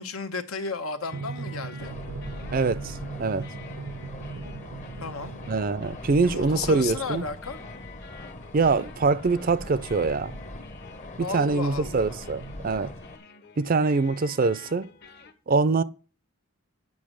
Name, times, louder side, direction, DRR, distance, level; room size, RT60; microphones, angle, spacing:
voice 1, 0.0-1.9 5.0-5.3 6.2-7.6 11.2-12.2, left 4 dB, 80° left, 1.1 m, -34 dB
sound 1, 0.7-15.3, left 5 dB, 50° left, 1.2 m, -50 dB
Drum, 1.1-6.2, right 4 dB, 85° right, 0.7 m, -39 dB
sound 2, 1.8-13.2, left 1 dB, 35° left, 0.9 m, -41 dB
voice 2, 2.5-3.5 5.5-7.3 8.5-10.4 11.3-12.9 13.6-14.9 15.5-15.8, right 4 dB, 40° right, 0.5 m, -24 dB
8.6 x 5.4 x 7.5 m
head